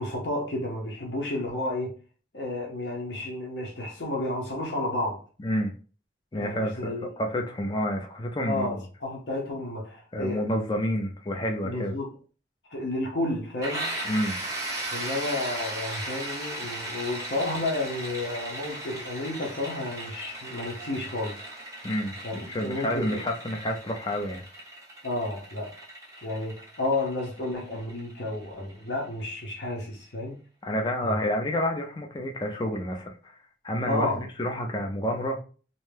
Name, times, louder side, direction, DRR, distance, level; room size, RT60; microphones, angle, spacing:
voice 1, 0.0-1.9 2.3-5.2 6.4-7.1 8.5-10.4 11.6-12.1 12.7-13.9 14.9-21.4 22.2-23.2 25.0-25.8 26.2-30.4 31.0-31.2 33.9-34.2, left 2 dB, 75° left, 0.7 m, -31 dB
voice 2, 5.4-5.7 6.3-6.9 7.2-8.8 10.1-11.9 14.1-14.4 21.8-24.4 30.6-33.4 33.6-35.4, equal, 25° left, 0.4 m, -29 dB
sound 1, 13.6-29.2, right 1 dB, 20° right, 0.8 m, -37 dB
2.6 x 2.1 x 3.2 m
head